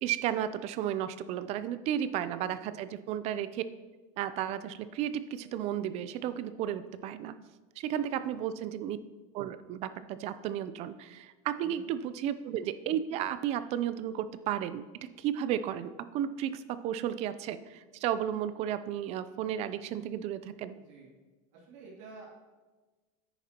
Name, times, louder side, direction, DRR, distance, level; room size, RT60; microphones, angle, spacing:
voice 1, 0.0-3.6 4.2-7.3 7.8-9.0 9.3-14.8 15.2-20.8, right 10 dB, 40° right, 13 dB, 0.5 m, -33 dB
voice 2, 2.3-2.7 8.1-8.4 11.6-11.9 20.7-21.1 21.5-22.2, right 3 dB, 75° right, -5 dB, 2.8 m, -52 dB
9.8 x 9.3 x 2.9 m, 1.2 s
supercardioid pair, 160°, 17 cm